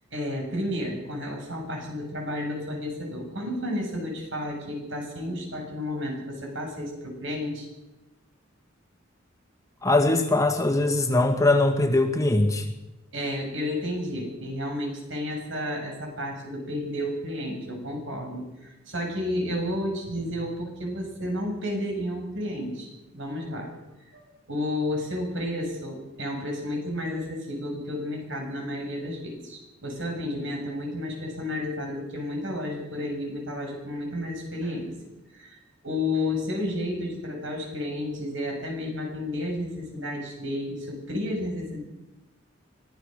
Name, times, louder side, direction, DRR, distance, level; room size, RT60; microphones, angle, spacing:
voice 1, 0.1-7.7 13.1-23.8 24.1-24.2 24.5-34.9 35.3-35.6 35.8-41.8, left 1 dB, 65° right, 2 dB, 7.6 m, -31 dB
voice 2, 9.8-12.7, left 2 dB, 15° left, 4 dB, 2.0 m, -21 dB
25.0 x 16.0 x 6.7 m, 1.0 s
head